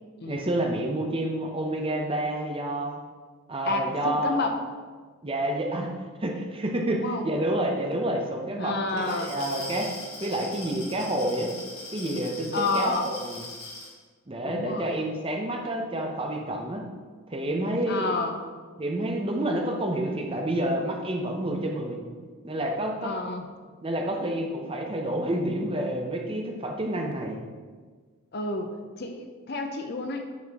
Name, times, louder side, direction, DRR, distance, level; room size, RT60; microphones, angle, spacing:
voice 1, 0.3-3.0 3.5-4.4 5.2-5.9 6.2-9.9 10.2-11.5 11.9-13.4 14.3-16.8 17.3-18.1 18.8-22.0 22.4-23.1 23.8-27.4, right 1 dB, 25° right, 1 dB, 0.7 m, -29 dB
voice 2, 3.6-4.5 6.9-7.3 8.6-9.3 12.5-13.1 14.4-15.0 17.9-18.4 23.0-23.5 28.3-30.3, left 3 dB, 45° left, 5 dB, 0.6 m, -30 dB
Glass, 8.9-13.9, left 2 dB, 85° left, 1.7 m, -40 dB
9.5 x 4.2 x 3.5 m, 1.5 s
head